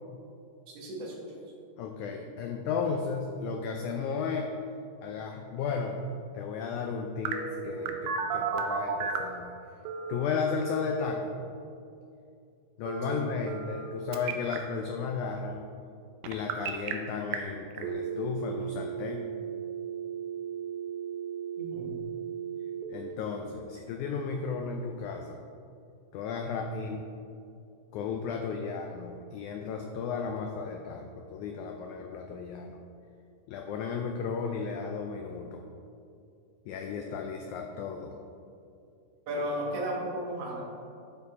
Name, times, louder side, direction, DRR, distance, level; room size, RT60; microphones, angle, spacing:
voice 1, 0.7-1.4 13.1-13.3 21.6-22.0 39.3-40.6, equal, 55° right, -2 dB, 2.1 m, -35 dB
voice 2, 1.8-4.5 5.0-6.0 6.3-7.4 7.6-9.6 10.1-11.3 12.8-15.6 16.2-19.3 22.9-25.4 26.1-27.0 27.9-32.8 33.5-35.6 36.7-38.2, left 5 dB, 85° left, 3 dB, 1.7 m, -34 dB
Telephone, 7.3-9.3 9.9-10.9 12.9-13.9 14.1-14.6 16.2-16.9 17.3-17.4 17.8-22.8, right 7 dB, 80° right, 2.2 m, -35 dB
12.0 x 4.4 x 4.2 m, 2.5 s
omnidirectional pair, 4.0 m